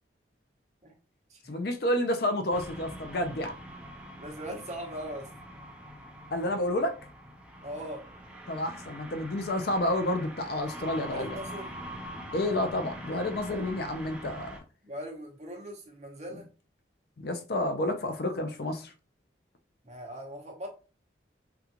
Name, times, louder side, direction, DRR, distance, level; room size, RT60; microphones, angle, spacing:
voice 1, 1.5-3.6 6.3-7.0 8.5-11.4 12.3-14.5 17.2-18.9, left 1 dB, 55° left, 0.5 m, -30 dB
sound 1, 2.5-14.6, equal, 5° right, 0.4 m, -44 dB
voice 2, 4.2-5.3 7.6-8.0 11.1-11.7 14.8-16.5 19.8-20.7, equal, 35° right, 0.8 m, -40 dB
3.7 x 2.3 x 2.8 m
head